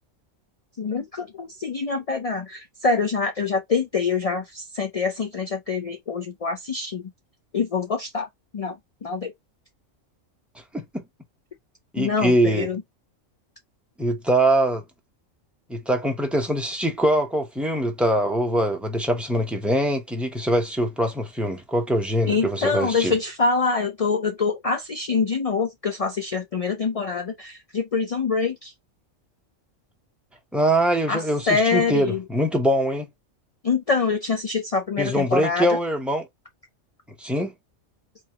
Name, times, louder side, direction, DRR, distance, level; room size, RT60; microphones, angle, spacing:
voice 1, 0.8-7.0 7.5-8.3 8.5-8.8 9.0-9.3 12.0-12.8 22.3-28.7 31.1-32.2 33.6-35.8, left 4 dB, 55° left, 0.4 m, -25 dB
voice 2, 11.9-12.7 14.0-14.8 15.7-23.1 30.5-33.1 35.0-36.3 37.2-37.5, right 1 dB, ahead, 0.7 m, -23 dB
3.9 x 2.9 x 2.9 m
omnidirectional pair, 1.3 m